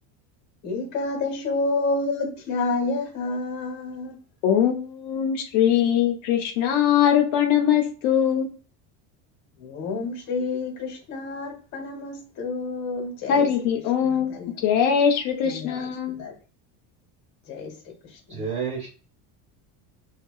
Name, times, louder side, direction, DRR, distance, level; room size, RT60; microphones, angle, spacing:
voice 1, 0.6-4.2 9.6-13.5 14.0-14.5 15.4-16.3 17.5-18.5, left 3 dB, 50° left, 1.0 m, -29 dB
voice 2, 4.4-8.5 13.3-16.2, left 9 dB, 70° left, 0.7 m, -22 dB
voice 3, 18.3-18.9, right 6 dB, 35° right, 1.0 m, -29 dB
2.7 x 2.3 x 2.3 m
cardioid pair, 170°, 36 cm